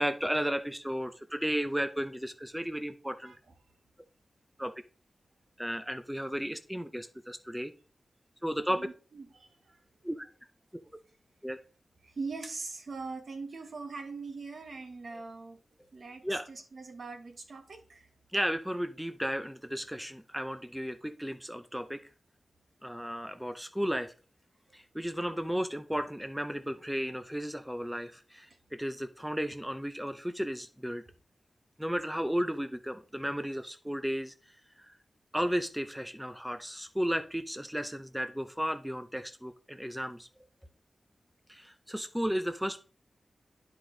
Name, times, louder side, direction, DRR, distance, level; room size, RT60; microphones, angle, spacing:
voice 1, 0.0-3.3 4.6-4.7 5.6-7.7 8.4-8.9 10.0-10.2 11.4-11.6 15.1-15.2 16.2-16.5 18.3-22.0 22.8-24.1 24.7-31.0 31.8-34.9 35.3-40.3 41.5-42.8, equal, 5° right, 0.5 m, -34 dB
voice 2, 8.8-9.5 12.0-15.6 15.9-18.1, right 4 dB, 60° right, 1.3 m, -41 dB
10.5 x 4.8 x 3.8 m
wide cardioid pair, 115°, 0 cm